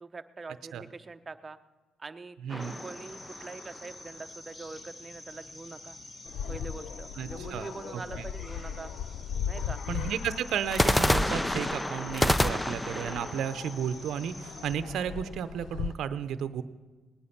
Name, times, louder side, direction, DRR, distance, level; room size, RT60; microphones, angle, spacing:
voice 1, 0.0-1.6 2.0-6.0 6.5-8.9 9.5-9.8, right 3 dB, 30° right, 9 dB, 0.8 m, -43 dB
voice 2, 2.4-2.7 7.2-8.2 9.9-16.6, right 8 dB, 75° right, 12 dB, 0.7 m, -33 dB
sound 1, 2.5-3.9 10.7-14.7, left 1 dB, 10° left, 0.5 m, -29 dB
sound 2, 2.6-14.8, left 2 dB, 35° left, 2.1 m, -48 dB
sound 3, 6.3-16.0, left 8 dB, 70° left, 0.4 m, -39 dB
19.0 x 9.8 x 5.8 m, 1.3 s
cardioid pair, 90°, 0 cm